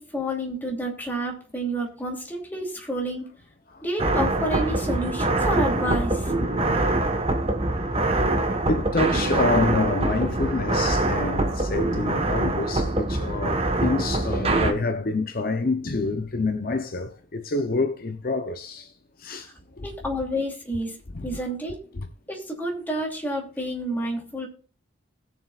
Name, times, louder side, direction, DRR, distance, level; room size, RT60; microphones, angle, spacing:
voice 1, 0.0-3.2 3.8-6.3 19.4-19.5 19.8-21.0 21.2-21.8 22.3-24.5, equal, 10° left, 2.7 m, -29 dB
sound 1, 4.0-14.7, right 2 dB, 30° right, 1.3 m, -24 dB
voice 2, 8.7-18.9 19.2-19.5 19.8-19.9 21.1-21.4 21.9-22.1, left 3 dB, 50° left, 0.7 m, -27 dB
20.5 x 7.1 x 2.4 m
head